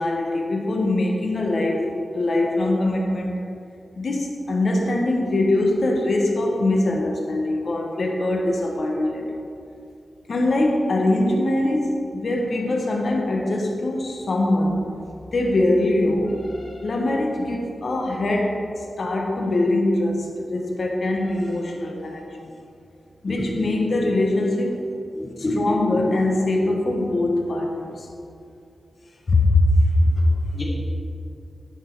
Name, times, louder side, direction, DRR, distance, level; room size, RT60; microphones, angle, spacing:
voice 1, 0.0-3.4 4.0-9.4 10.3-14.9 15.3-22.5 23.2-25.0 25.6-28.1 29.3-30.4, left 1 dB, 55° left, 1 dB, 0.9 m, -22 dB
voice 2, 23.3-23.7 24.0-24.2 25.1-25.9 30.5-30.6, left 1 dB, 35° left, -5 dB, 2.3 m, -28 dB
11.0 x 6.0 x 4.5 m, 2.5 s
wide cardioid pair, 145°, 0 cm